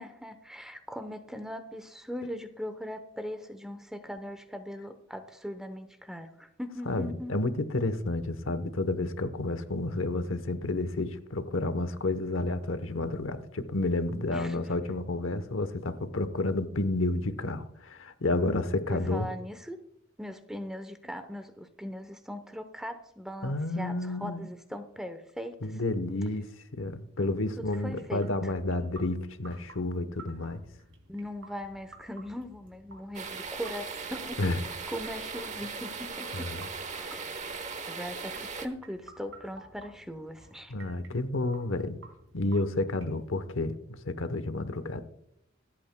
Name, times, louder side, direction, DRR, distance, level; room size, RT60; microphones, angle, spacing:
voice 1, 0.0-7.3 14.3-14.6 18.9-19.8 20.2-25.8 27.6-28.5 31.1-34.4 34.9-36.5 36.9-37.3 37.8-40.7, equal, 5° right, 0.8 m, -40 dB
voice 2, 6.9-19.3 23.4-24.5 25.6-30.6 34.4-34.6 36.3-36.7 40.7-42.0 42.3-45.0, left 2 dB, 80° left, 0.9 m, -30 dB
sound 1, 27.6-43.5, right 2 dB, 80° right, 2.9 m, -54 dB
sound 2, 33.1-38.7, right 5 dB, 35° right, 0.9 m, -38 dB
26.0 x 8.7 x 2.2 m
head